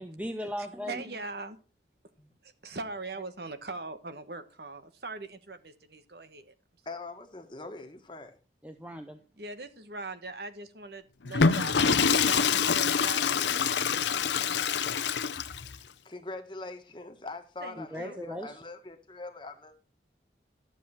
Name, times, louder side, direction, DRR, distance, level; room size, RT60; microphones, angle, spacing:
voice 1, 0.0-1.0 8.6-9.2 17.8-18.5, equal, 10° right, 6 dB, 0.7 m, -37 dB
voice 2, 0.6-1.6 2.4-6.5 9.4-14.9 17.6-18.2, right 3 dB, 65° right, 10 dB, 1.3 m, -41 dB
voice 3, 6.8-8.4 15.7-15.8 16.0-19.7, left 2 dB, 25° left, 5 dB, 1.5 m, -42 dB
Water / Toilet flush, 11.2-15.8, left 6 dB, 90° left, 0.7 m, -26 dB
12.0 x 7.6 x 4.3 m, 0.36 s
head